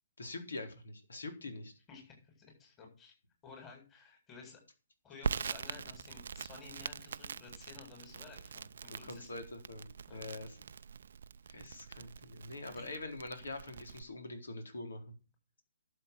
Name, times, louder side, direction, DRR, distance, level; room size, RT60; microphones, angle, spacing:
voice 1, 0.2-1.7 8.9-10.6 11.5-15.1, left 2 dB, 70° left, 6 dB, 4.2 m, -44 dB
voice 2, 1.9-3.1 3.4-4.6 5.0-9.3 10.1-10.3 12.7-12.8, left 5 dB, 20° left, 1 dB, 7.6 m, -54 dB
Crackle, 5.2-14.0, right 6 dB, 60° right, 0.6 m, -43 dB
12.0 x 7.9 x 8.6 m, 0.34 s
figure-of-eight pair, 130°, 0 cm